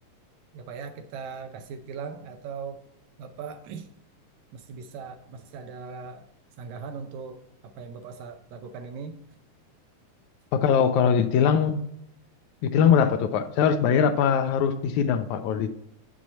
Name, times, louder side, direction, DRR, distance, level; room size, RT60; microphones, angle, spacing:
voice 1, 0.5-2.8 3.2-3.9 4.5-6.2 6.6-9.2, right 5 dB, 75° right, 8 dB, 1.8 m, -39 dB
voice 2, 10.5-11.8 12.7-15.7, left 7 dB, 80° left, 9 dB, 1.8 m, -21 dB
8.0 x 6.2 x 4.2 m, 0.77 s
omnidirectional pair, 3.5 m